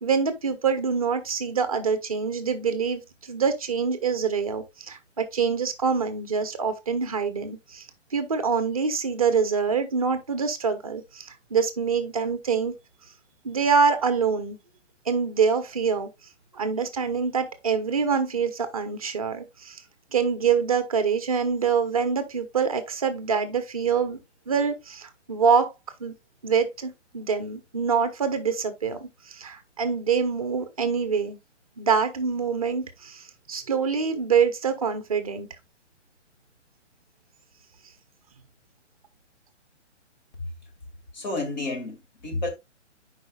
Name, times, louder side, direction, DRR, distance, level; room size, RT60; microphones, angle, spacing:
voice 1, 0.0-12.7 13.4-14.6 15.1-16.1 16.5-19.8 20.1-24.2 24.5-25.7 26.0-26.1 26.4-31.4 31.8-35.5, right 6 dB, 30° right, 0.7 m, -25 dB
voice 2, 41.1-42.5, left 2 dB, 35° left, 2.0 m, -31 dB
10.5 x 4.9 x 2.3 m
hypercardioid pair, 175°, 36 cm